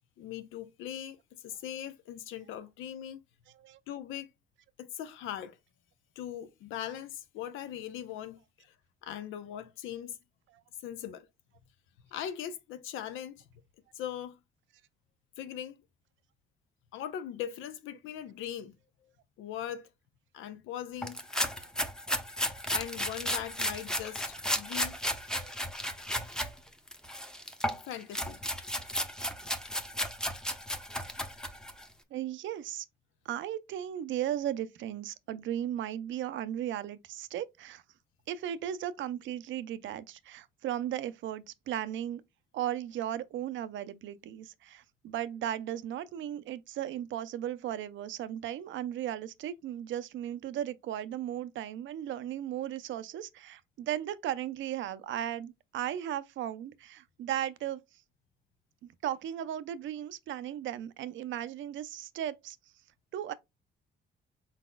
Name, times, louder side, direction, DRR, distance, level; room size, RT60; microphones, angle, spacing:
voice 1, 0.2-1.2 1.4-3.2 3.9-4.3 4.8-5.6 6.2-8.7 9.0-10.2 10.8-11.3 12.1-13.5 13.9-14.4 15.4-15.8 16.9-18.8 19.4-19.9 20.3-21.3 22.3-22.4 22.7-25.0 26.2-26.5 27.8-28.4, left 10 dB, 90° left, 0.6 m, -40 dB
sound 1, 21.0-26.5 26.9-31.8, equal, 5° left, 0.7 m, -34 dB
voice 2, 32.1-32.9 33.3-37.8 38.3-42.2 42.5-57.8 59.0-62.6 63.1-63.3, right 11 dB, 75° right, 0.5 m, -36 dB
4.2 x 4.0 x 2.2 m
cardioid pair, 90°, 20 cm